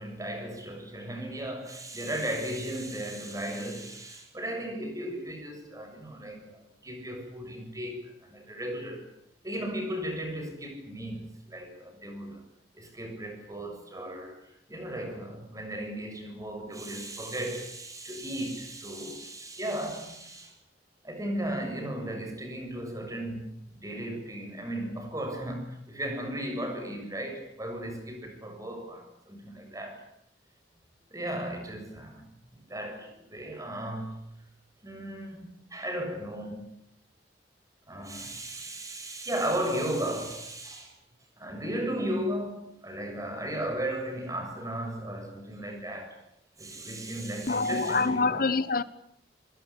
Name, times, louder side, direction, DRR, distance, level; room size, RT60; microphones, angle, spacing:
voice 1, 0.0-9.1 9.4-12.4 12.7-20.5 21.0-30.0 31.1-32.2 32.5-34.4 34.8-36.7 37.9-40.9 41.4-46.2 46.6-48.5, right 1 dB, 20° right, 7.3 m, -35 dB
voice 2, 47.5-48.8, left 4 dB, 55° left, 1.3 m, -26 dB
26.5 x 21.0 x 8.7 m
head